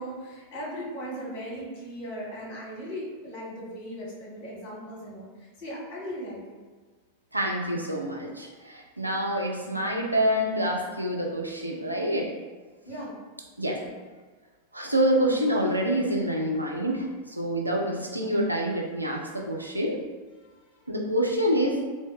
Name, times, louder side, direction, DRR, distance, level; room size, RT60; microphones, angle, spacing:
voice 1, 0.0-6.6 12.9-13.1 13.6-13.9 20.4-20.8, equal, 45° left, -5 dB, 1.3 m, -38 dB
voice 2, 7.3-12.3 13.6-13.8 14.7-20.0 20.9-21.8, equal, 85° right, -1 dB, 0.5 m, -27 dB
3.4 x 2.0 x 3.4 m, 1.4 s
figure-of-eight pair, 90°, 0 cm